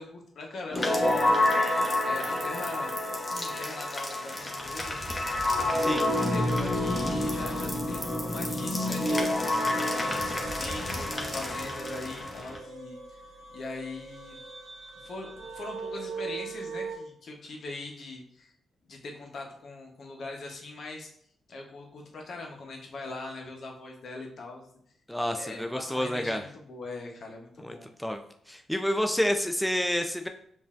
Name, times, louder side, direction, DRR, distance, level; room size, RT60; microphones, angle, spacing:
voice 1, 0.0-1.7 2.0-2.9 3.3-5.0 5.5-13.0 13.5-14.4 15.0-18.5 18.9-21.1 21.5-24.7 25.3-27.9, left 3 dB, 65° left, 1 dB, 0.9 m, -41 dB
sound 1, 0.7-12.6, left 1 dB, 25° left, 0.9 m, -28 dB
sound 2, 6.2-17.0, right 4 dB, 75° right, 0.9 m, -42 dB
voice 2, 25.1-26.4 27.6-28.2 28.5-30.3, equal, 5° left, 5 dB, 0.4 m, -29 dB
5.3 x 2.6 x 2.4 m, 0.66 s
supercardioid pair, 60°, 0 cm